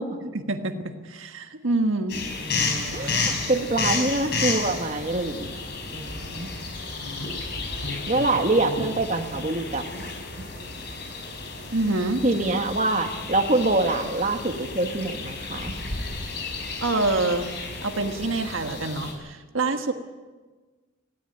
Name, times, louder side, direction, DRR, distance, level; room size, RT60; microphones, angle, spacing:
voice 1, 0.2-2.2 3.0-3.3 11.7-12.2 16.8-17.5 17.8-19.9, right 2 dB, 75° right, 6 dB, 1.5 m, -26 dB
sound 1, 2.1-19.1, left 3 dB, 55° left, 4.9 m, -32 dB
voice 2, 2.9-5.6 5.9-6.5 8.1-10.1 12.2-15.7, right 2 dB, 35° right, 4 dB, 1.6 m, -25 dB
19.0 x 16.5 x 9.1 m, 1.3 s
head